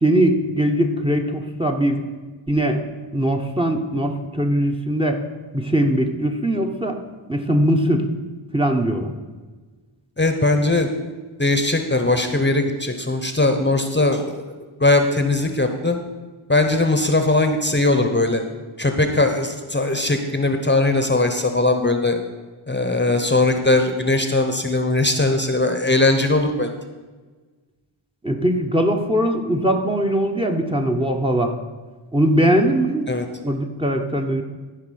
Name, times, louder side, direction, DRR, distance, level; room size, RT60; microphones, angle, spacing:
voice 1, 0.0-2.0 2.5-2.8 3.1-5.2 5.5-7.0 7.3-8.1 8.5-9.1 28.2-31.5 32.1-33.1 33.4-34.4, right 1 dB, 10° right, 5 dB, 1.1 m, -20 dB
voice 2, 10.2-10.9 11.4-14.4 14.8-16.0 16.5-18.4 18.8-22.2 22.7-26.7 33.1-33.3, left 2 dB, 20° left, 6 dB, 1.0 m, -19 dB
14.5 x 4.9 x 6.5 m, 1.3 s
cardioid pair, 60°, 49 cm